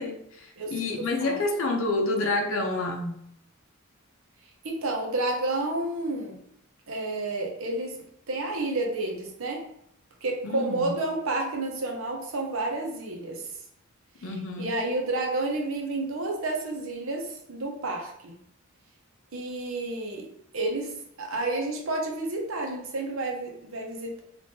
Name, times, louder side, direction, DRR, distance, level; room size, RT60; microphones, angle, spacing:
voice 1, 0.0-3.2 10.4-10.9 14.2-14.7, left 2 dB, 70° left, 3 dB, 0.6 m, -28 dB
voice 2, 0.6-0.9 1.2-1.4 4.6-6.4 6.9-8.0 8.3-9.6 10.2-13.4 14.6-18.3 19.3-20.3 20.5-20.9 21.2-24.2, right 2 dB, 70° right, 1 dB, 0.7 m, -30 dB
3.5 x 2.5 x 2.7 m, 0.71 s
head